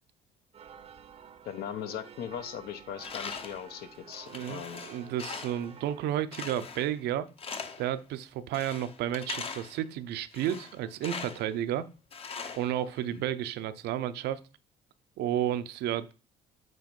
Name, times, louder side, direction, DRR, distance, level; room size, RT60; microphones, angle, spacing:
sound 1, 0.5-6.2, right 7 dB, 35° right, 0.6 m, -51 dB
voice 1, 1.5-4.8 13.1-13.2, left 9 dB, 70° left, 0.8 m, -39 dB
Tools, 3.0-3.7 4.1-5.7 6.3-7.0 7.4-7.9 8.5-9.8 10.3-11.5 12.1-13.2, left 5 dB, 35° left, 0.7 m, -41 dB
voice 2, 4.3-4.6 4.9-7.3 7.8-11.9 12.6-14.4 15.2-16.1, right 11 dB, 75° right, 0.6 m, -32 dB
7.5 x 3.0 x 5.3 m
cardioid pair, 110°, 17 cm